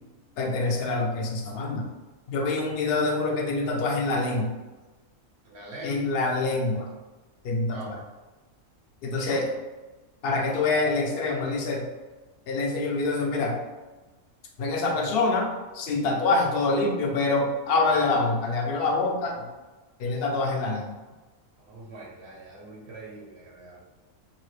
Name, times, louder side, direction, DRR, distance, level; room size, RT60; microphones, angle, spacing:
voice 1, 0.4-1.9 2.3-4.5 5.8-6.9 7.4-8.0 9.0-9.5 10.2-11.9 12.5-13.6 14.6-15.5 15.7-19.5 20.0-20.9, left 3 dB, 60° left, 0 dB, 0.7 m, -25 dB
voice 2, 5.4-6.0 7.7-8.0 21.6-23.8, right 1 dB, 55° right, -3 dB, 1.0 m, -43 dB
2.9 x 2.4 x 3.2 m, 1.2 s
omnidirectional pair, 1.4 m